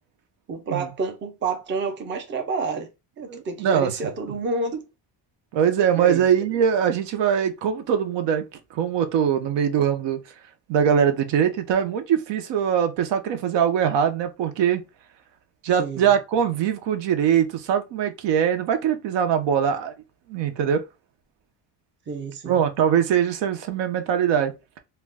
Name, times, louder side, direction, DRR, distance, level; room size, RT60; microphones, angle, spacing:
voice 1, 0.5-2.9 3.2-4.9 5.9-6.2 15.8-16.1 22.1-22.6, right 3 dB, 25° right, 0.5 m, -29 dB
voice 2, 3.3-4.0 5.5-10.2 10.7-14.8 15.6-19.9 20.3-20.9 22.4-24.5, right 8 dB, 80° right, 0.7 m, -22 dB
2.4 x 2.1 x 3.4 m
cardioid pair, 150°, 43 cm